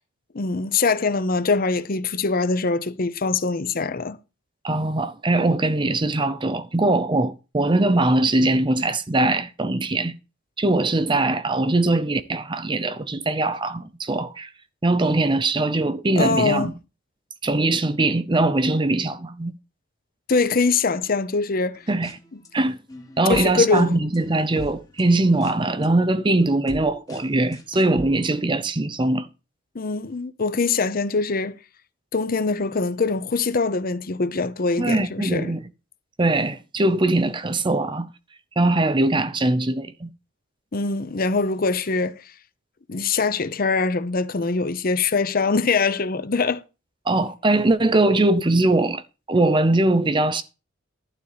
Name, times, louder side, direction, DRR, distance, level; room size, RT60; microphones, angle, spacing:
voice 1, 0.3-4.2 16.2-16.7 20.3-21.8 23.3-24.0 29.7-31.6 32.1-35.5 40.7-42.2 42.9-46.6, left 4 dB, 45° left, 0.7 m, -23 dB
voice 2, 4.6-10.1 10.6-14.5 14.8-16.7 17.4-19.5 21.9-22.2 22.5-22.8 23.2-29.3 34.8-35.6 36.2-38.1 38.6-40.1 47.1-49.0 49.3-50.4, right 2 dB, 25° right, 0.6 m, -21 dB
sound 1, 21.8-22.5 22.9-28.3, equal, 20° left, 1.5 m, -40 dB
12.0 x 4.1 x 6.7 m
head